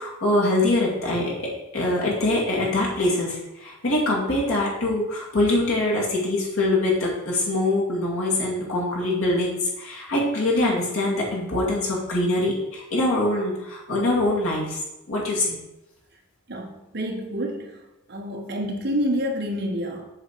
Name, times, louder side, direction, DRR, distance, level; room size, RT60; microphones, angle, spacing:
voice 1, 0.0-14.8 15.1-15.6, left 2 dB, 75° left, -4 dB, 2.3 m, -24 dB
voice 2, 16.5-17.8 18.1-20.1, equal, 50° right, 1 dB, 1.1 m, -28 dB
7.5 x 4.3 x 4.5 m, 0.92 s
head